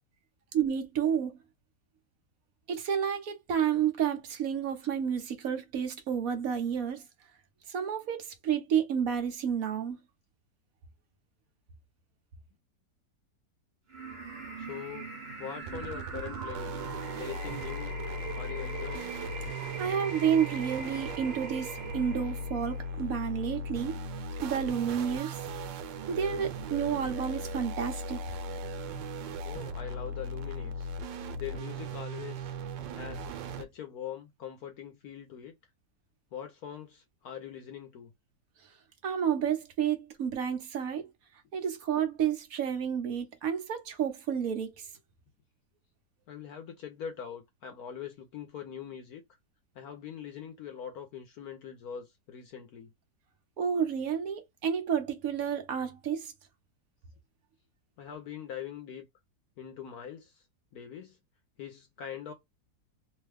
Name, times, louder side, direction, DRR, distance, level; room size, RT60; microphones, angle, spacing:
voice 1, 0.5-1.4 2.7-7.0 7.7-10.0 19.8-24.0 24.4-25.4 26.1-28.2 39.0-41.1 41.5-44.9 53.6-56.3, right 8 dB, 60° right, 1.1 m, -30 dB
sound 1, 13.9-22.9, right 4 dB, 40° right, 1.3 m, -41 dB
voice 2, 14.6-15.1 15.4-16.8 17.2-17.9 18.3-19.1 29.4-30.9 31.4-32.5 32.9-35.5 36.3-38.1 46.3-49.2 49.7-52.9 58.0-59.1 59.6-60.4 60.7-61.2 61.6-62.3, left 8 dB, 65° left, 1.0 m, -42 dB
sound 2, 15.6-33.6, right 1 dB, 90° right, 1.3 m, -38 dB
3.1 x 2.1 x 3.3 m
omnidirectional pair, 1.9 m